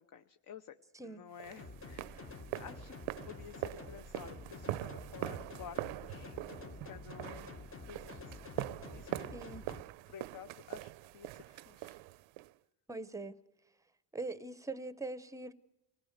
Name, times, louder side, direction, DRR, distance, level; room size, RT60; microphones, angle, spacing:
voice 1, 0.0-0.8 1.0-2.9 3.2-8.5 8.9-9.1 10.1-12.0, left 8 dB, 45° left, 0.8 m, -52 dB
sound 1, 1.4-12.5, right 17 dB, 75° right, 0.6 m, -43 dB
sound 2, 1.6-9.8, left 3 dB, 25° left, 1.2 m, -49 dB
voice 2, 9.3-9.7 12.9-13.4 14.1-15.5, right 3 dB, 5° right, 0.7 m, -42 dB
25.5 x 17.5 x 6.6 m
cardioid pair, 140°, 47 cm